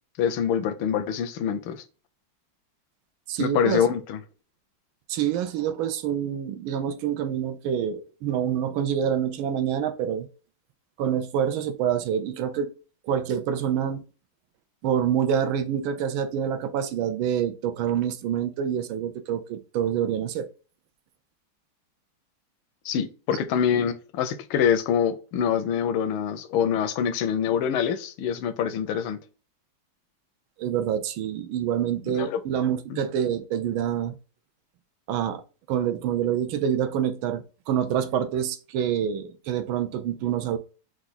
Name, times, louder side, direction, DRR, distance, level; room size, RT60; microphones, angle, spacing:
voice 1, 0.2-1.8 3.4-4.2 22.8-29.2 32.1-32.4 32.9-33.0, left 8 dB, 85° left, 1.4 m, -25 dB
voice 2, 3.3-3.9 5.1-10.3 11.0-12.7 13.0-14.0 14.8-20.5 30.6-34.2 35.1-35.4 35.7-40.6, right 9 dB, 80° right, 1.4 m, -26 dB
4.6 x 2.4 x 4.0 m
omnidirectional pair, 2.2 m